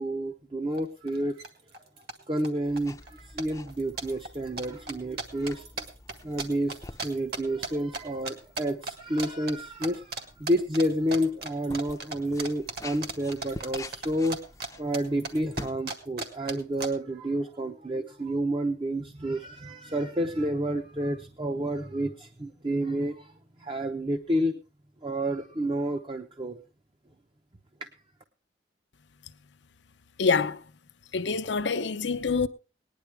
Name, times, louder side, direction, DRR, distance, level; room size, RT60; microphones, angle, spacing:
voice 1, 0.0-1.4 2.3-5.7 6.2-14.4 14.8-23.3 23.6-24.6 25.0-26.6, right 1 dB, 25° right, 0.7 m, -30 dB
sound 1, 0.8-0.9 1.1-1.5 1.7-2.5 2.8-3.1 3.4-8.0 8.2-8.9 9.2-9.6 9.8-10.2 10.5-14.7 14.9-16.9, right 3 dB, 55° right, 1.8 m, -35 dB
sound 2, 2.6-15.7, left 2 dB, 15° left, 0.6 m, -47 dB
voice 2, 30.2-30.7 31.1-32.5, left 4 dB, 70° left, 0.7 m, -26 dB
19.0 x 10.5 x 3.3 m
head